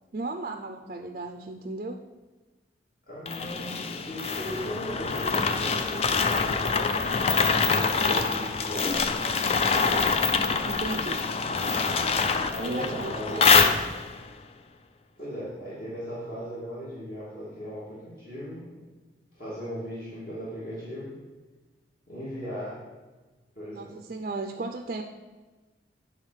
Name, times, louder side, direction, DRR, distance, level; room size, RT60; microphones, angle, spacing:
voice 1, 0.1-2.0 7.5-8.2 10.3-11.3 12.6-13.8 23.7-25.0, right 3 dB, 45° right, 4 dB, 0.5 m, -36 dB
voice 2, 3.1-6.8 7.7-9.1 9.5-10.2 12.5-13.6 15.2-18.7 19.4-21.2 22.1-22.8 23.6-23.9, equal, 50° left, -10 dB, 2.5 m, -37 dB
sound 1, 3.3-14.2, left 5 dB, 35° left, 0.4 m, -25 dB
9.6 x 3.9 x 6.3 m, 1.2 s
head